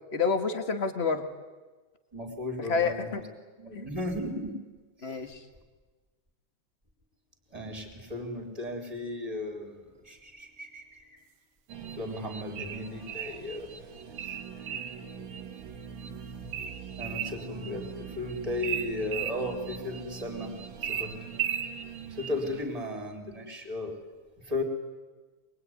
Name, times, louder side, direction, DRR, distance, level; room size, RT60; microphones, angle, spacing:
voice 1, 0.1-1.2 2.6-3.2 3.7-3.8 5.0-5.4, left 5 dB, 30° left, 7 dB, 1.2 m, -28 dB
voice 2, 2.1-3.2 3.6-4.5 5.0-5.2 7.5-9.7 10.1-11.0 12.0-13.7 17.0-20.5 20.9-21.1 22.2-24.0 24.5-24.6, left 2 dB, 10° right, 3 dB, 3.6 m, -35 dB
sound 1, 11.7-22.6, right 6 dB, 55° right, 1.6 m, -43 dB
sound 2, 12.6-13.4 14.2-15.0 16.5-17.4 18.6-19.4 20.8-21.7, right 10 dB, 75° right, 2.4 m, -33 dB
23.5 x 22.0 x 9.6 m, 1.3 s
omnidirectional pair, 3.3 m